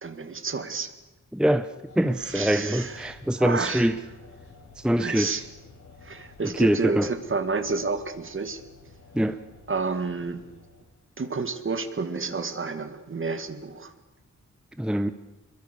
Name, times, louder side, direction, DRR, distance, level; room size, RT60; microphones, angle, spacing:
voice 1, 0.0-0.9 2.2-3.9 4.9-5.4 6.0-8.6 9.7-10.4 11.2-13.9, right 4 dB, 40° right, 2.0 m, -30 dB
voice 2, 1.3-1.7 2.0-3.9 4.8-5.4 6.4-7.1 9.1-9.4 14.8-15.1, right 1 dB, 5° right, 0.7 m, -24 dB
sound 1, 1.8-11.1, left 3 dB, 75° left, 6.8 m, -51 dB
26.5 x 22.5 x 6.8 m
wide cardioid pair, 135°, 30 cm